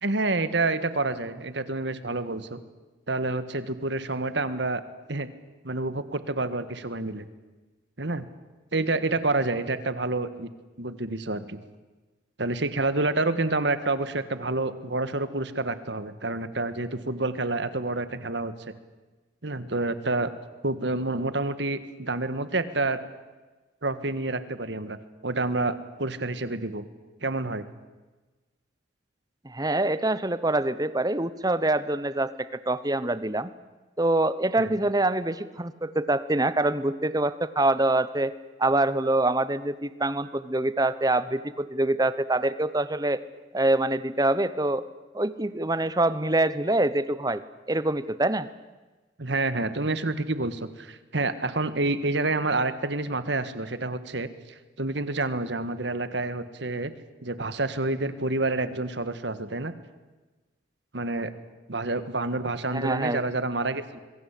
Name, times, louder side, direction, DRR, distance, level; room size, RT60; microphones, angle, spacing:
voice 1, 0.0-2.6 3.1-4.8 5.1-5.3 5.6-7.3 8.0-8.3 8.7-10.5 10.8-11.6 12.4-18.7 19.4-20.3 20.6-23.0 23.8-25.0 25.2-26.8 27.2-27.7 34.6-34.8 49.2-56.9 57.2-59.7 60.9-61.3 61.7-64.0, right 2 dB, 60° right, 12 dB, 1.7 m, -28 dB
voice 2, 29.4-33.5 34.0-38.3 38.6-43.2 43.5-44.8 45.1-47.4 47.7-48.5 62.7-63.3, right 2 dB, 20° right, 15 dB, 0.9 m, -25 dB
26.0 x 22.0 x 8.5 m, 1.2 s
head